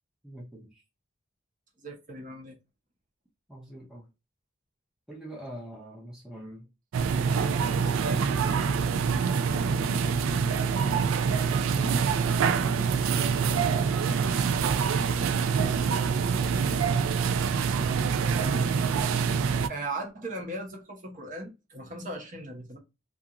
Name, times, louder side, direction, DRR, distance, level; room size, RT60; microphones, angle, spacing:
voice 1, 0.2-0.8 3.5-4.1 5.1-6.7, right 1 dB, 5° right, 0.5 m, -47 dB
voice 2, 1.8-2.5 15.4-15.9 18.4-18.7 19.7-22.8, right 2 dB, 40° right, 0.8 m, -38 dB
sound 1, 6.9-19.7, right 6 dB, 80° right, 0.3 m, -25 dB
2.4 x 2.4 x 2.8 m
head